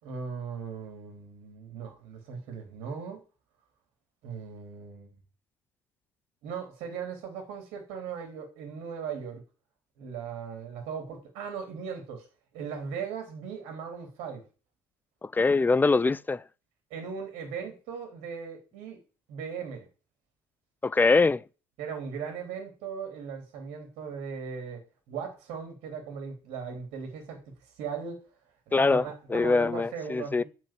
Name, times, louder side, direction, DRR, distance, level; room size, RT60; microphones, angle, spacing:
voice 1, 0.0-3.2 4.2-5.2 6.4-9.4 10.0-12.3 12.5-14.4 16.9-19.0 19.3-19.9 21.8-27.4 27.8-28.3 28.7-30.4, right 6 dB, 65° right, 3.4 m, -38 dB
voice 2, 15.2-16.4 20.8-21.4 28.7-29.0 29.3-30.4, left 3 dB, 15° left, 0.5 m, -23 dB
7.8 x 6.6 x 7.5 m
hypercardioid pair, 60°, 12 cm